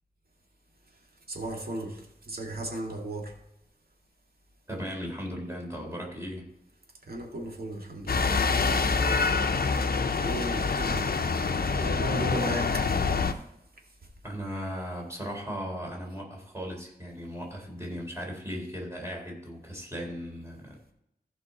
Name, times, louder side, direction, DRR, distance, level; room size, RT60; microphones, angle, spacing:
voice 1, 1.3-3.3 7.1-8.5 10.2-11.1 11.8-12.9, right 1 dB, 70° right, 2.2 m, -36 dB
voice 2, 4.7-6.5 14.2-20.8, equal, 15° right, 3.8 m, -37 dB
sound 1, 8.1-13.3, left 4 dB, 70° left, 0.7 m, -26 dB
15.0 x 5.5 x 4.1 m
wide cardioid pair, 85°, 16 cm